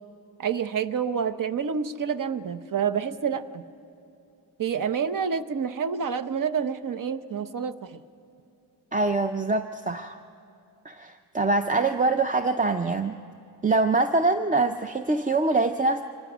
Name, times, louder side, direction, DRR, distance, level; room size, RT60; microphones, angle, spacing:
voice 1, 0.4-3.6 4.6-8.0, right 7 dB, 50° right, 12 dB, 0.8 m, -28 dB
voice 2, 8.9-10.2 10.8-13.2 13.6-16.0, right 3 dB, 20° right, 8 dB, 0.5 m, -24 dB
24.5 x 19.0 x 6.1 m, 2.7 s
wide cardioid pair, 110°, 40 cm